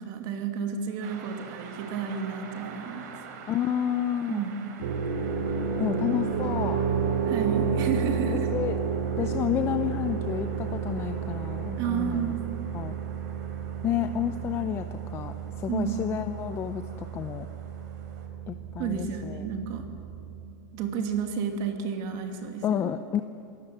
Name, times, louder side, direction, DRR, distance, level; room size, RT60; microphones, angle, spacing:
voice 1, 0.0-3.1 4.3-4.6 7.3-8.5 11.8-12.5 15.7-16.1 18.8-19.8 20.7-22.9, right 7 dB, 40° right, 4 dB, 2.7 m, -31 dB
sound 1, 1.0-18.3, right 6 dB, 65° right, 3.7 m, -48 dB
voice 2, 3.5-4.4 5.8-6.8 8.3-8.8 9.2-12.3 12.7-12.9 13.8-14.9 15.1-17.5 18.5-19.4 22.6-23.2, left 10 dB, 25° left, 10 dB, 0.6 m, -30 dB
sound 2, 4.8-20.5, right 6 dB, 80° right, 5.3 m, -31 dB
27.5 x 18.0 x 7.9 m, 2.7 s
supercardioid pair, 155°, 10 cm